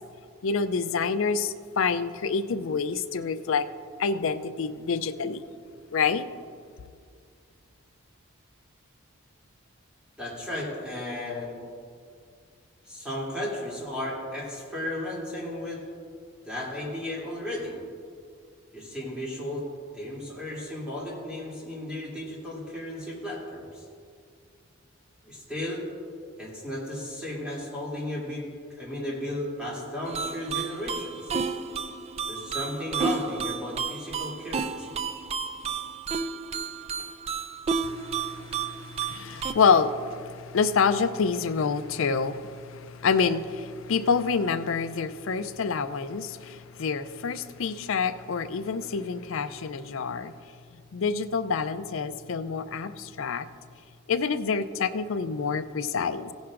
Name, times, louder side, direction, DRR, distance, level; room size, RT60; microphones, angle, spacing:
voice 1, 0.4-3.7 4.0-5.4 5.9-6.3 37.8-50.3 50.9-53.5 54.1-56.3, left 5 dB, 65° left, 0.4 m, -27 dB
voice 2, 10.2-11.6 12.8-15.8 16.5-17.8 18.7-19.6 19.9-23.8 25.2-25.9 26.4-28.5 28.8-31.3 32.3-34.9, left 1 dB, 5° right, 2.7 m, -34 dB
sound 1, 30.0-39.5, right 5 dB, 30° right, 0.3 m, -32 dB
16.5 x 10.5 x 2.5 m
head